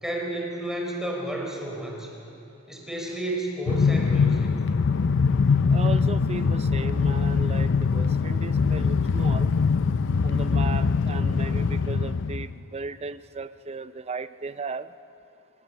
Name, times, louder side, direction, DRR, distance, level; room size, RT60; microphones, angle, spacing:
voice 1, 0.0-2.2 2.7-4.7, right 1 dB, ahead, -1 dB, 3.9 m, -32 dB
Train, 3.7-12.5, left 5 dB, 55° left, 0.5 m, -23 dB
voice 2, 5.7-9.6 10.2-14.9, right 4 dB, 30° right, 13 dB, 0.5 m, -36 dB
26.5 x 17.0 x 7.1 m, 2.9 s
head